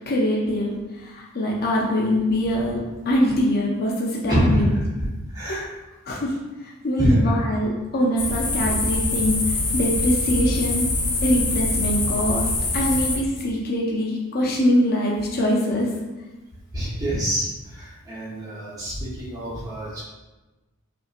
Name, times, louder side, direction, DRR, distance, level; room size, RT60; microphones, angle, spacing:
voice 1, 0.1-4.7 5.5-5.6 6.1-10.9 11.2-15.9, equal, 45° left, -3 dB, 0.5 m, -23 dB
voice 2, 4.3-5.6 7.0-7.4 16.7-20.0, equal, 15° right, -9 dB, 0.9 m, -25 dB
sound 1, 8.2-13.2, left 2 dB, 75° left, 0.8 m, -24 dB
5.2 x 2.7 x 2.5 m, 1.1 s
head